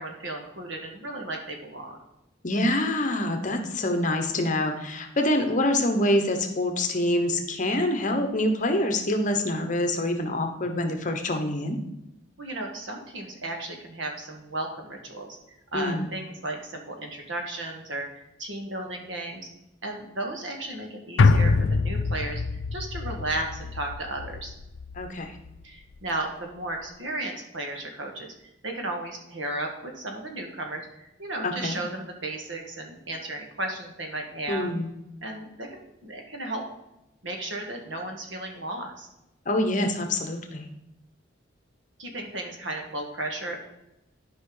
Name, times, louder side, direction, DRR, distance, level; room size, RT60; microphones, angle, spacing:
voice 1, 0.0-2.0 12.4-15.4 15.7-19.5 19.8-24.5 25.6-28.3 28.6-34.7 35.2-36.6 37.2-39.1 42.0-43.6, right 2 dB, 80° right, 2 dB, 1.6 m, -34 dB
voice 2, 2.4-11.8 15.7-16.1 24.9-25.3 31.4-31.8 34.5-34.9 39.5-40.7, left 1 dB, 40° left, 5 dB, 1.0 m, -26 dB
sound 1, 21.2-25.6 26.0-26.1, left 4 dB, 75° left, 0.4 m, -25 dB
11.5 x 5.3 x 3.9 m, 0.87 s
head